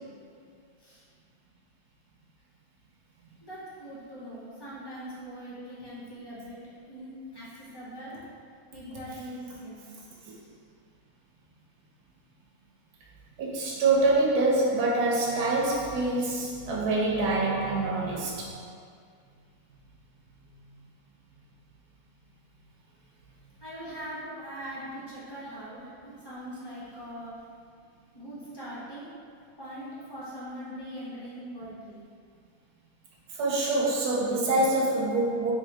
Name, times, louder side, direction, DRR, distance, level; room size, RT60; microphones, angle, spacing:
voice 1, 3.4-6.6 6.9-8.2 8.7-10.5 23.6-27.4 28.1-29.1 29.6-32.0, equal, 30° left, -10 dB, 0.4 m, -41 dB
voice 2, 13.4-18.5 33.3-35.5, right 2 dB, 90° right, -4 dB, 1.1 m, -25 dB
3.5 x 2.7 x 3.2 m, 2.2 s
omnidirectional pair, 1.6 m